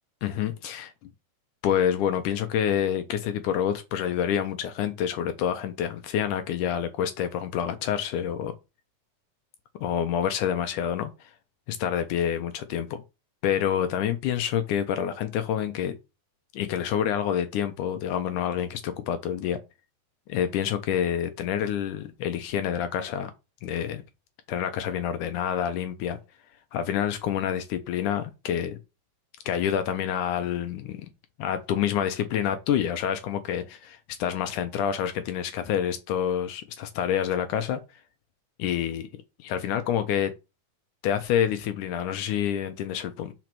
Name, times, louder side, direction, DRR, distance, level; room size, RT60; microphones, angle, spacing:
voice 1, 0.2-1.1 1.6-8.5 9.8-11.3 11.7-13.0 13.4-15.9 16.5-19.6 20.3-23.3 23.6-24.0 24.5-26.2 26.7-28.8 29.5-31.1 31.4-37.8 38.6-39.1 39.4-40.3 41.0-43.3, left 9 dB, 80° left, 2.0 m, -27 dB
5.1 x 4.6 x 6.0 m
omnidirectional pair, 4.1 m